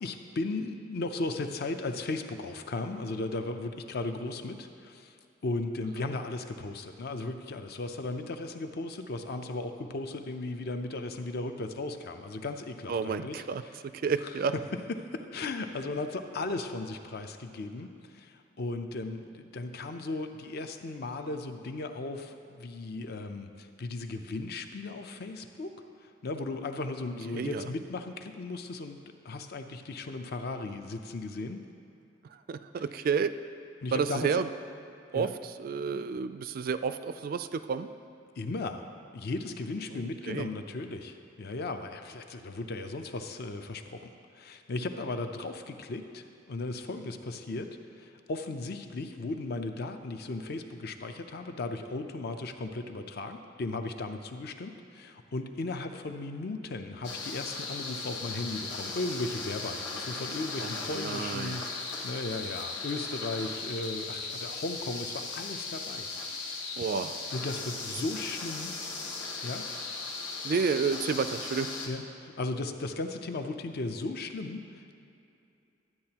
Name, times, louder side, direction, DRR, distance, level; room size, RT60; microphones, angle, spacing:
voice 1, 0.0-5.2 5.4-13.7 14.2-14.3 15.0-25.7 26.0-29.0 29.2-31.6 33.8-34.4 35.1-35.3 38.4-38.9 39.1-44.0 44.3-66.6 67.3-68.7 69.4-69.7 71.9-74.9, left 2 dB, 55° left, 7 dB, 0.5 m, -36 dB
voice 2, 12.9-14.5 27.3-27.7 32.5-33.3 33.9-34.5 35.1-37.9 39.9-40.5 60.6-61.6 66.8-67.1 70.4-71.7, right 5 dB, 50° right, 12 dB, 0.3 m, -31 dB
sound 1, 57.0-71.9, left 3 dB, 75° left, 1.2 m, -37 dB
12.0 x 8.6 x 2.9 m, 2.6 s
head